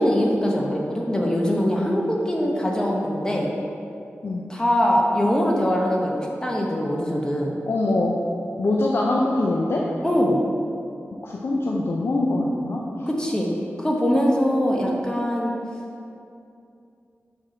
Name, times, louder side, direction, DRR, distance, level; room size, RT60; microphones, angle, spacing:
voice 1, 0.0-3.5 4.5-7.5 10.0-10.4 13.1-13.5 13.8-15.5, equal, 15° left, -2 dB, 0.8 m, -22 dB
voice 2, 7.7-8.1 8.6-9.8 11.2-13.1, left 2 dB, 60° left, -3 dB, 0.5 m, -23 dB
4.9 x 4.7 x 5.7 m, 2.6 s
wide cardioid pair, 100°, 5 cm